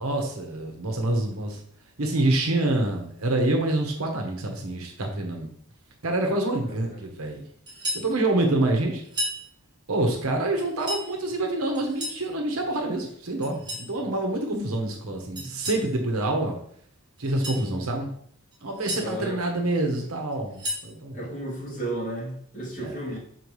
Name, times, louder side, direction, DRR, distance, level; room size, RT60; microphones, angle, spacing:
voice 1, 0.0-1.6 2.0-5.5 6.0-7.4 7.9-9.0 9.9-16.6 17.2-18.1 18.6-21.3 22.8-23.0, right 2 dB, 80° right, 2 dB, 1.0 m, -26 dB
voice 2, 6.6-7.1 14.0-14.1 15.3-15.5 17.6-17.9 19.0-19.4 21.1-23.2, right 1 dB, 40° left, -7 dB, 2.7 m, -34 dB
sound 1, 7.7-8.1 9.0-9.4 10.6-11.1 11.7-12.2 13.4-13.9 15.4-15.9 17.2-17.6 18.5-19.0 20.3-20.9, left 1 dB, 20° right, 1.7 m, -33 dB
6.9 x 4.4 x 3.1 m, 0.65 s
head